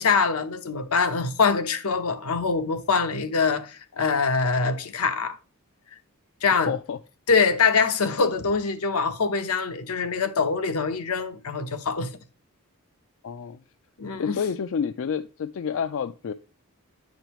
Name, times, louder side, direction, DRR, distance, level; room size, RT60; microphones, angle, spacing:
voice 1, 0.0-5.4 6.4-6.7 7.3-12.1 14.0-14.4, left 5 dB, 80° left, 0.8 m, -24 dB
voice 2, 6.7-7.0 13.2-13.6 14.2-16.3, left 7 dB, 60° left, 0.4 m, -29 dB
9.9 x 5.2 x 3.0 m
head